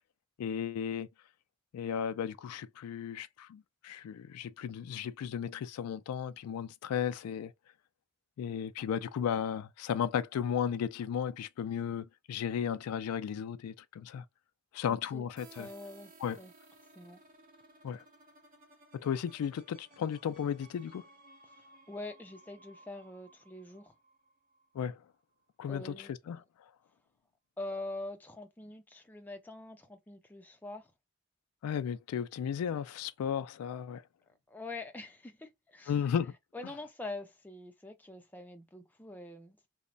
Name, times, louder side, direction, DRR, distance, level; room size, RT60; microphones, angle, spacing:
voice 1, 0.4-1.1 1.7-7.5 8.4-14.2 14.7-15.7 16.2-16.4 17.8-18.0 18.9-21.0 24.7-25.0 25.6-26.4 31.6-34.0 35.9-36.3, left 8 dB, 90° left, 0.3 m, -35 dB
voice 2, 14.9-15.3 15.5-16.5 17.0-17.2 21.5-23.9 25.7-26.4 27.6-30.9 34.5-36.1 36.5-39.7, left 2 dB, 10° left, 0.4 m, -44 dB
sound 1, 15.4-24.9, right 2 dB, 40° right, 0.8 m, -59 dB
3.0 x 2.1 x 2.5 m
head